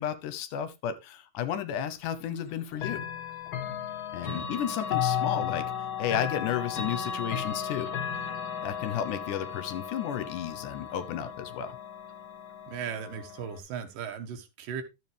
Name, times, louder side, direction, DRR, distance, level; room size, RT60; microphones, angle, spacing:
voice 1, 0.0-3.1 4.1-5.7 6.0-7.9 8.6-11.8, left 9 dB, 75° left, 2.4 m, -33 dB
Chime / Clock, 2.8-13.6, left 8 dB, 60° left, 1.4 m, -34 dB
voice 2, 12.7-14.8, right 7 dB, 85° right, 3.0 m, -37 dB
12.5 x 7.2 x 3.4 m
omnidirectional pair, 3.7 m